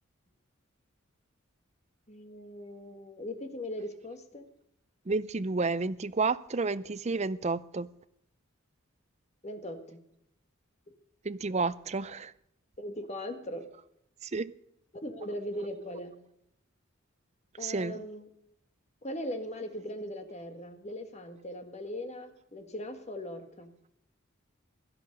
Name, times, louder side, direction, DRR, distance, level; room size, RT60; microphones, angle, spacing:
voice 1, 2.1-4.5 9.4-10.0 12.8-13.7 15.0-16.1 17.6-18.3 19.0-23.7, left 1 dB, 30° left, 1.6 m, -39 dB
voice 2, 5.1-7.9 11.2-12.3 14.3-14.5 17.6-18.0, right 3 dB, 30° right, 0.5 m, -31 dB
17.0 x 12.5 x 5.3 m
head